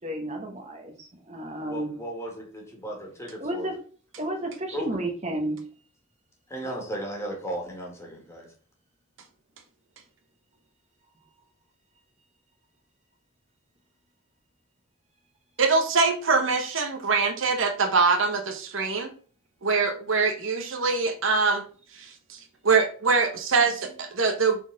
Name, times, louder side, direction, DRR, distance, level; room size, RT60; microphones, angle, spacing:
voice 1, 0.0-1.9 3.4-3.8 4.2-5.7, right 1 dB, 30° right, 3 dB, 1.2 m, -32 dB
voice 2, 1.6-3.7 4.7-4.9 6.5-8.5, right 1 dB, 15° left, 0 dB, 2.0 m, -35 dB
voice 3, 15.6-19.1 19.6-21.6 21.9-24.6, right 4 dB, 65° right, 6 dB, 1.0 m, -24 dB
5.7 x 4.3 x 4.0 m, 0.42 s
head